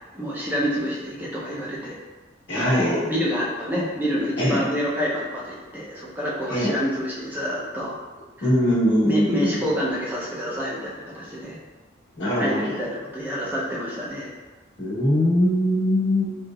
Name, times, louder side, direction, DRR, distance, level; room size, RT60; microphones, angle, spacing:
voice 1, 0.1-2.0 2.5-7.9 8.4-8.5 9.0-11.5 12.3-14.3, equal, 10° right, -6 dB, 0.5 m, -28 dB
voice 2, 2.5-3.0 4.4-4.6 6.5-6.7 8.4-9.6 12.2-12.8 14.8-16.4, equal, 80° left, -9 dB, 1.1 m, -21 dB
3.1 x 2.8 x 2.3 m, 1.3 s
head